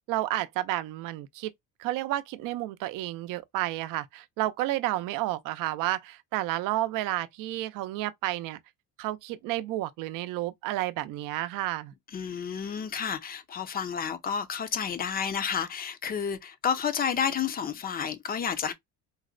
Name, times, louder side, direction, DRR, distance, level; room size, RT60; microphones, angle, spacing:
voice 1, 0.1-1.5 1.8-8.6 9.0-11.9, right 15 dB, 70° right, 0.6 m, -31 dB
voice 2, 12.1-18.7, left 7 dB, 25° left, 0.5 m, -30 dB
4.0 x 2.0 x 2.3 m
cardioid pair, 135°, 35 cm